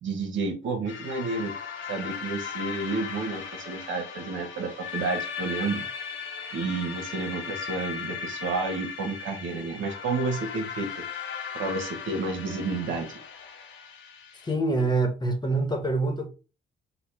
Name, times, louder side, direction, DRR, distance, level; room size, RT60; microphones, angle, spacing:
voice 1, 0.0-1.6 1.9-5.8 6.5-11.0 11.5-13.2, right 3 dB, 75° right, 1.2 m, -31 dB
sound 1, 0.9-14.5, left 6 dB, 85° left, 1.2 m, -37 dB
voice 2, 14.4-16.3, right 2 dB, 20° left, 1.1 m, -25 dB
4.1 x 2.4 x 4.7 m
cardioid pair, 90°, 20 cm